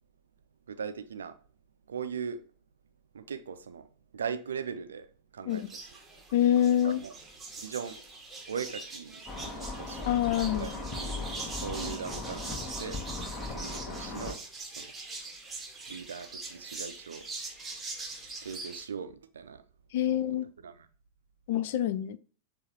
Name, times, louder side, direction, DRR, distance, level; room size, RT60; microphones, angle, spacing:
voice 1, 0.7-1.4 1.9-2.4 3.1-3.9 4.1-5.9 6.8-7.1 7.6-8.0 8.5-9.2 9.5-11.1 11.6-13.0 13.5-14.4 14.8-14.9 15.9-17.3 18.4-19.6 20.0-20.9, right 6 dB, 70° right, 0.5 m, -39 dB
sound 1, 5.5-18.8, right 3 dB, 15° right, 1.0 m, -43 dB
voice 2, 6.3-7.0 10.1-10.7 19.9-20.5 21.5-22.2, left 11 dB, 55° left, 0.3 m, -26 dB
sound 2, 9.3-14.3, left 3 dB, 25° left, 1.1 m, -38 dB
7.0 x 2.5 x 2.9 m
figure-of-eight pair, 90°, 0 cm